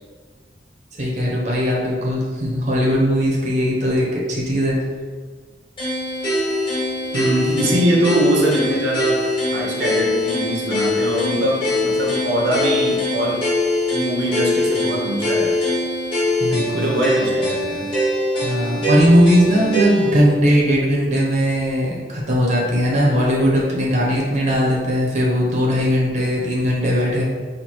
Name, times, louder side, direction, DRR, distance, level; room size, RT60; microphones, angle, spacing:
voice 1, 0.9-4.8 16.4-16.9 18.4-27.2, equal, 40° right, -4 dB, 0.8 m, -19 dB
sound 1, 5.8-20.2, left 1 dB, 30° left, 1.4 m, -22 dB
voice 2, 7.1-9.2 9.5-13.4 13.9-15.7 16.7-17.9, right 1 dB, 70° right, -2 dB, 0.9 m, -22 dB
4.3 x 2.6 x 4.4 m, 1.5 s
head